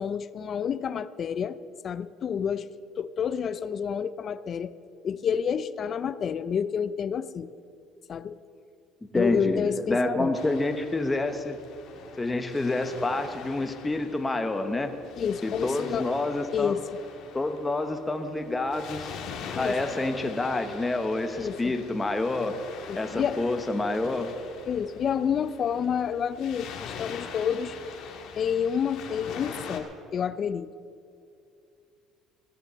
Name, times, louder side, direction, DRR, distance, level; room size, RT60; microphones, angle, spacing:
voice 1, 0.0-1.6 1.8-2.7 3.0-4.7 5.0-7.5 8.1-8.4 9.1-10.3 15.2-16.1 16.5-17.0 19.6-19.8 21.4-21.7 22.9-23.4 24.7-27.7 28.4-30.7, left 7 dB, 40° left, 16 dB, 0.5 m, -29 dB
voice 2, 9.1-11.6 12.2-14.9 15.4-16.7 17.3-19.2 19.6-22.6 23.0-24.3, left 2 dB, 15° left, 6 dB, 1.0 m, -28 dB
Waves surf, 10.3-29.8, left 6 dB, 60° left, 1.7 m, -43 dB
16.0 x 10.5 x 6.8 m, 2.5 s
cardioid pair, 135°, 0 cm